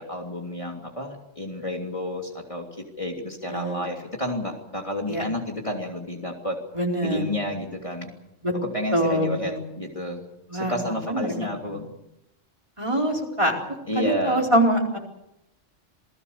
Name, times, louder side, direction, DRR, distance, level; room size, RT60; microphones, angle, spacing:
voice 1, 0.0-2.7 3.0-6.6 7.0-8.1 8.7-10.2 10.5-11.9 13.9-14.4, left 1 dB, 25° left, 0 dB, 3.2 m, -30 dB
voice 2, 3.5-3.9 5.1-5.2 6.7-7.3 8.4-8.5 8.9-9.6 10.5-10.8 11.1-11.3 11.6-11.7 12.8-13.5 13.9-15.0, right 1 dB, 25° right, 0 dB, 4.5 m, -24 dB
28.0 x 19.5 x 6.9 m, 0.86 s
omnidirectional pair, 1.3 m